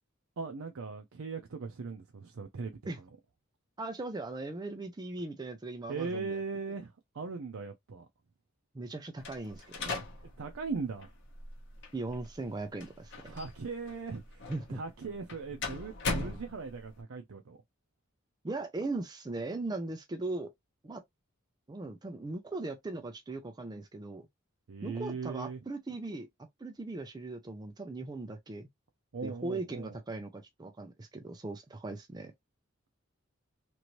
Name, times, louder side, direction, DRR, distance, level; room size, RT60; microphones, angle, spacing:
voice 1, 0.4-2.8 5.9-8.1 10.4-11.1 13.3-17.6 24.7-25.6 29.1-30.0, right 4 dB, 75° right, 0.5 m, -39 dB
voice 2, 3.8-6.4 8.7-10.1 11.9-13.4 14.5-14.8 16.2-16.4 18.4-20.5 20.8-21.0 21.7-24.3 24.8-26.3 26.6-28.7 29.2-32.3, right 2 dB, 20° right, 0.4 m, -39 dB
sound 1, 9.2-17.0, left 3 dB, 60° left, 1.0 m, -41 dB
3.0 x 2.6 x 2.9 m
head